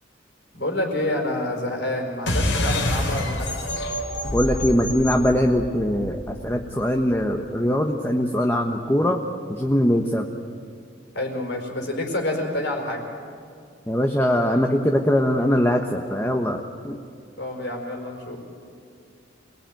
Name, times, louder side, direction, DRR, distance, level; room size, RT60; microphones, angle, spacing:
voice 1, 0.5-3.6 11.1-13.0 17.4-18.4, left 1 dB, 65° left, 1 dB, 5.1 m, -28 dB
sound 1, 2.3-7.2, left 1 dB, 90° left, 4.8 m, -27 dB
voice 2, 4.3-9.2 9.5-10.3 13.9-17.0, equal, 10° left, 3 dB, 1.1 m, -22 dB
27.5 x 19.5 x 9.2 m, 2.3 s
head